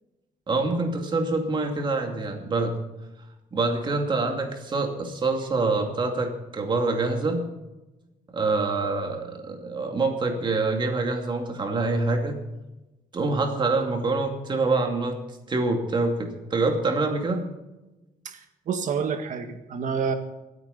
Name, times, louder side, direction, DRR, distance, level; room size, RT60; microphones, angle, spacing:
voice 1, 0.5-2.7 3.5-7.4 8.3-12.4 13.1-15.2 15.5-17.5, right 3 dB, 35° right, 3 dB, 2.5 m, -25 dB
voice 2, 18.7-20.1, right 6 dB, 60° right, 7 dB, 1.8 m, -28 dB
25.0 x 9.0 x 4.2 m, 1.0 s
cardioid pair, 140°, 14 cm